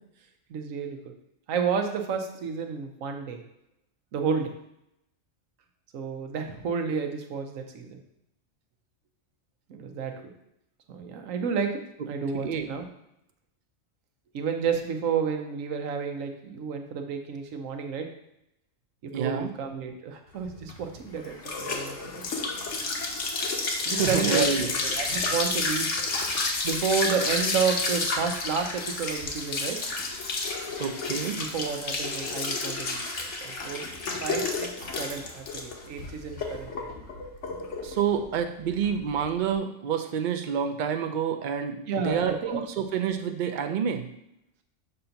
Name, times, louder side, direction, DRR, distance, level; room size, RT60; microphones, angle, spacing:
voice 1, 0.5-1.0 1.5-3.4 4.1-4.5 5.9-7.9 9.7-10.3 10.9-12.8 14.3-18.1 19.0-22.3 23.9-24.5 24.8-26.0 26.6-29.8 31.3-33.8 34.2-36.9 41.9-42.6, right 6 dB, 90° right, 5 dB, 1.1 m, -31 dB
voice 2, 12.4-12.7 19.1-19.5 23.9-24.8 30.8-31.4 37.8-41.8 42.0-44.1, right 7 dB, 50° right, 6 dB, 0.6 m, -28 dB
sound 1, 20.4-39.5, left 3 dB, 65° left, 1.2 m, -31 dB
6.7 x 2.6 x 5.7 m, 0.80 s
omnidirectional pair, 1.3 m